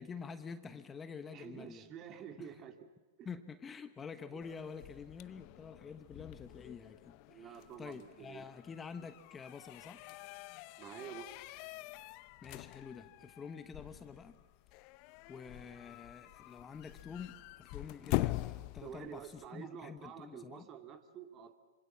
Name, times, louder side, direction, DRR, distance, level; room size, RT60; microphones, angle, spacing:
voice 1, 0.0-1.9 2.4-2.5 3.2-10.0 12.4-14.4 15.3-20.7, left 6 dB, 20° left, 11 dB, 1.2 m, -48 dB
voice 2, 1.3-2.8 3.2-3.3 4.3-4.5 7.3-8.5 10.8-11.3 18.8-21.6, right 8 dB, 35° right, 7 dB, 2.2 m, -49 dB
sound 1, 4.4-19.5, left 20 dB, 45° left, 0.7 m, -44 dB
26.5 x 25.0 x 7.3 m, 1.3 s
hypercardioid pair, 110°, 0 cm